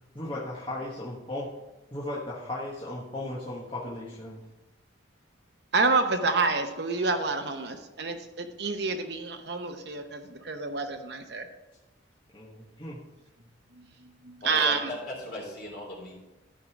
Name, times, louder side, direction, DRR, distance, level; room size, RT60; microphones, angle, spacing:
voice 1, 0.1-1.5 1.9-4.4 12.3-13.0, left 1 dB, 25° left, -7 dB, 1.3 m, -36 dB
voice 2, 5.7-11.4 14.2-14.8, right 4 dB, 60° right, 7 dB, 0.9 m, -28 dB
voice 3, 14.4-16.1, left 1 dB, 50° left, -4 dB, 3.6 m, -37 dB
13.0 x 5.3 x 4.8 m, 1.0 s
head